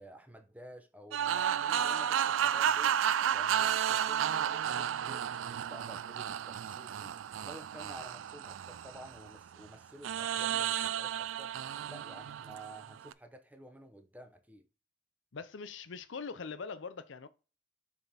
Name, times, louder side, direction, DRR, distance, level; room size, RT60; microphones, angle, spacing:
voice 1, 0.0-3.0 3.3-11.6 11.8-14.7, right 1 dB, 10° right, 0.7 m, -52 dB
sound 1, 1.1-9.4 10.0-13.1, right 9 dB, 90° right, 0.4 m, -32 dB
voice 2, 15.3-17.3, left 5 dB, 75° left, 0.6 m, -42 dB
6.9 x 3.7 x 4.1 m
head